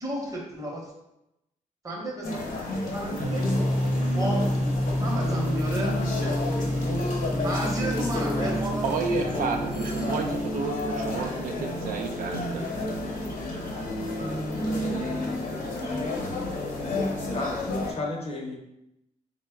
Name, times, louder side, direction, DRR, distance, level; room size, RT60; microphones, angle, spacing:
voice 1, 0.0-0.9 1.8-2.4 2.9-3.4 4.1-4.4 5.0-6.0 7.4-8.8, right 1 dB, 25° right, -2 dB, 0.8 m, -32 dB
sound 1, 2.2-17.9, left 1 dB, 75° left, 0.8 m, -30 dB
sound 2, 3.2-10.0, left 1 dB, 55° right, 0.8 m, -29 dB
voice 2, 8.8-12.6, right 4 dB, 85° right, 4 dB, 0.5 m, -31 dB
voice 3, 17.3-18.6, left 2 dB, 45° left, 1 dB, 0.6 m, -33 dB
3.9 x 2.1 x 3.4 m, 0.87 s
wide cardioid pair, 175°, 14 cm